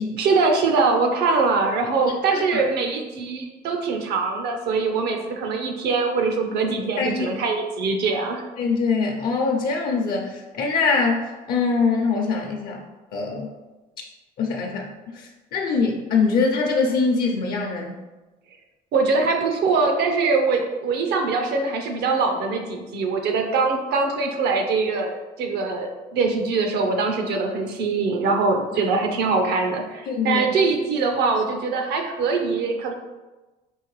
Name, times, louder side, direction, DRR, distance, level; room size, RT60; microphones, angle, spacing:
voice 1, 0.2-8.4 18.9-32.9, right 4 dB, 75° right, 3 dB, 0.7 m, -23 dB
voice 2, 8.6-11.2 11.5-12.8 13.1-13.5 14.4-14.9 15.1-18.0 30.1-30.4, left 4 dB, 65° left, 1 dB, 0.6 m, -23 dB
5.4 x 2.5 x 3.2 m, 1.1 s
cardioid pair, 110°, 17 cm